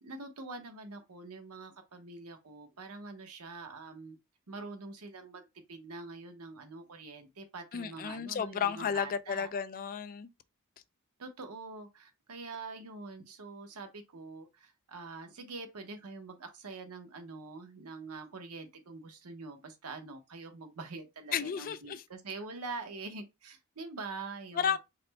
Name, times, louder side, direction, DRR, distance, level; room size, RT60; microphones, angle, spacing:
voice 1, 0.0-4.2 4.5-5.4 5.7-9.5 11.2-24.8, right 3 dB, 80° right, 0.9 m, -45 dB
voice 2, 7.7-10.3 21.3-22.0 24.6-24.8, left 7 dB, 40° left, 0.3 m, -33 dB
4.1 x 2.1 x 4.0 m
head